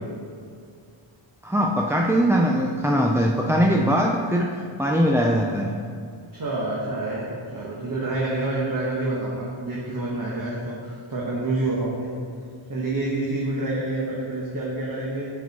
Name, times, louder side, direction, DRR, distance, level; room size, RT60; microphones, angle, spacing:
voice 1, 1.4-5.7, equal, 5° right, 0 dB, 0.3 m, -21 dB
voice 2, 6.3-12.1 12.7-15.3, right 2 dB, 40° right, -5 dB, 1.2 m, -28 dB
8.9 x 4.6 x 4.2 m, 2.3 s
wide cardioid pair, 95°, 50 cm